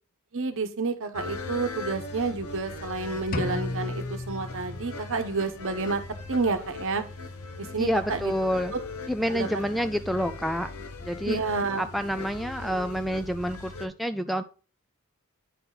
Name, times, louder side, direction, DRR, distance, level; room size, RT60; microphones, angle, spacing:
voice 1, 0.3-6.0 6.3-7.0 7.6-8.3 8.7-8.8 9.3-9.5 11.2-11.8, right 4 dB, 65° right, 7 dB, 0.9 m, -29 dB
sound 1, 1.1-13.9, left 3 dB, 75° left, 0.9 m, -39 dB
sound 2, 3.3-5.3, left 2 dB, 40° left, 0.6 m, -33 dB
voice 2, 7.8-8.7 9.1-10.7 11.0-11.4 11.8-14.4, equal, ahead, 6 dB, 0.3 m, -28 dB
9.1 x 4.2 x 3.9 m, 0.35 s
head